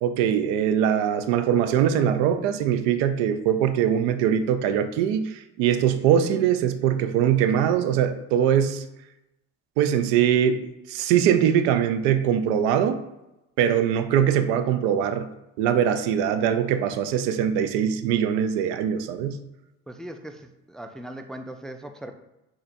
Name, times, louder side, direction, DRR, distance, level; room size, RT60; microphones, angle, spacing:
voice 1, 0.0-8.8 9.8-10.6 10.9-13.0 13.6-15.3 15.6-19.4, right 9 dB, 80° right, 10 dB, 0.5 m, -22 dB
voice 2, 19.9-22.1, right 1 dB, ahead, 7 dB, 0.4 m, -39 dB
6.2 x 2.9 x 2.6 m, 0.92 s
hypercardioid pair, 65°, 37 cm